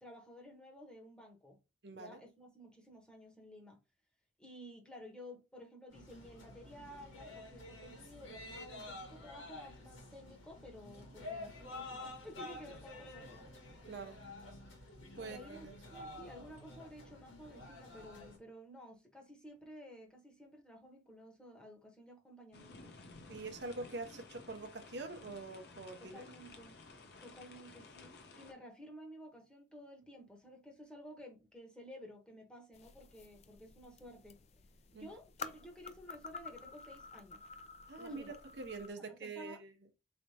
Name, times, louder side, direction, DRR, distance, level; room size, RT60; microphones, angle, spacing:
voice 1, 0.0-1.6 1.9-3.8 4.4-13.5 15.2-22.9 26.0-26.8 27.2-34.4 34.9-37.5 37.9-38.3 39.0-39.6, equal, 5° left, 0.9 m, -53 dB
voice 2, 1.8-2.2 13.9-14.2 15.2-15.7 23.3-26.2 34.9-35.1 37.9-39.7, right 3 dB, 60° right, 0.7 m, -45 dB
sound 1, 5.9-18.4, left 2 dB, 80° left, 1.6 m, -50 dB
sound 2, 22.5-28.5, left 3 dB, 55° left, 0.7 m, -55 dB
sound 3, 32.7-38.9, left 5 dB, 35° left, 0.3 m, -51 dB
4.2 x 3.3 x 2.7 m
head